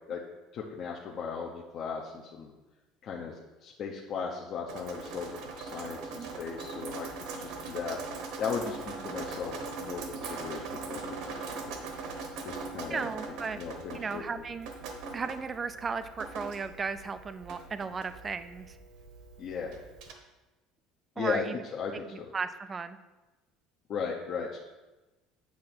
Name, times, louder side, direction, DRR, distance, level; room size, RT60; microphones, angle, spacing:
voice 1, 0.5-2.5 3.0-5.3 5.6-8.0 8.4-11.7 12.4-13.1 13.5-14.2 19.4-19.8 21.2-21.4 21.7-22.3 23.9-24.6, left 6 dB, 40° left, -2 dB, 0.8 m, -37 dB
Drip, 4.7-20.1, right 4 dB, 65° right, 1.1 m, -41 dB
voice 2, 12.9-13.6 13.9-14.7 15.1-18.8 21.2-21.5 22.3-23.0, right 5 dB, 20° right, 12 dB, 0.4 m, -35 dB
8.6 x 3.7 x 6.1 m, 1.1 s
cardioid pair, 145°, 0 cm